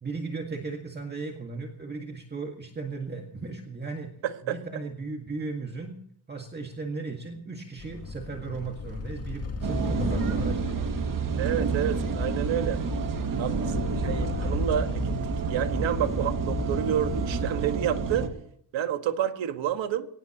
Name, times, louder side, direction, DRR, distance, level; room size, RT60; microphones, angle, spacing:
voice 1, 0.0-4.1 4.4-6.0 6.3-11.1, right 4 dB, 20° right, 1.9 m, -36 dB
voice 2, 4.2-4.6 11.4-12.8 13.4-15.1 15.5-18.3 18.7-20.1, right 10 dB, 80° right, 1.8 m, -29 dB
sound 1, 7.8-17.5, left 3 dB, 30° left, 2.0 m, -35 dB
sound 2, 9.6-18.3, right 5 dB, 45° right, 2.2 m, -29 dB
23.0 x 19.0 x 3.0 m
cardioid pair, 160°, 45 cm